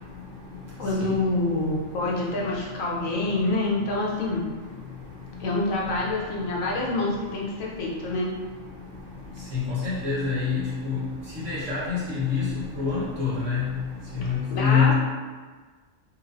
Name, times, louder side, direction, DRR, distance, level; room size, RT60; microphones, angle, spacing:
voice 1, 0.8-4.4 5.4-8.3 14.5-14.9, left 2 dB, 80° left, -3 dB, 1.2 m, -26 dB
voice 2, 9.5-11.0 11.4-12.5 12.8-13.7 14.2-14.9, left 6 dB, 65° right, -9 dB, 1.7 m, -25 dB
4.4 x 2.8 x 2.6 m, 1.4 s
omnidirectional pair, 1.4 m